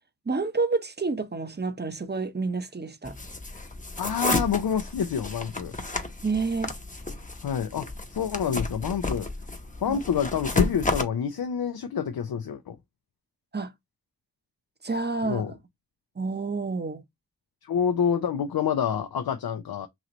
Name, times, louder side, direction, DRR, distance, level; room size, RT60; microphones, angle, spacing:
voice 1, 0.3-3.2 6.2-6.7 9.9-10.0 13.5-13.7 14.8-15.6 16.2-17.0, right 4 dB, 30° right, 0.8 m, -29 dB
sound 1, 3.0-11.0, left 3 dB, 20° left, 0.9 m, -31 dB
voice 2, 4.0-5.8 7.4-9.3 9.8-12.8 15.2-15.5 17.6-19.9, left 7 dB, 85° left, 0.5 m, -27 dB
3.1 x 2.9 x 3.8 m
wide cardioid pair, 50°, 35 cm